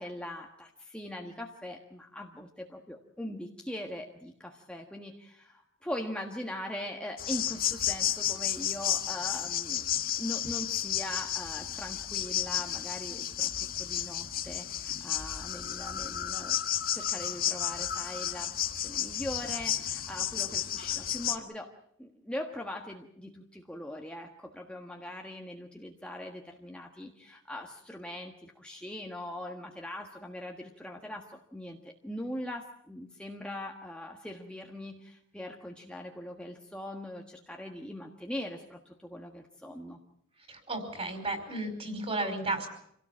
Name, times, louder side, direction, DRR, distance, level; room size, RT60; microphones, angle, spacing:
voice 1, 0.0-9.9 10.2-16.6 16.9-21.7 22.0-40.0, left 1 dB, 5° left, 1 dB, 1.5 m, -41 dB
sound 1, 7.2-21.4, left 11 dB, 45° left, 1.4 m, -32 dB
voice 2, 40.5-42.7, right 2 dB, 30° right, 7 dB, 5.1 m, -33 dB
27.5 x 17.5 x 7.4 m, 0.72 s
head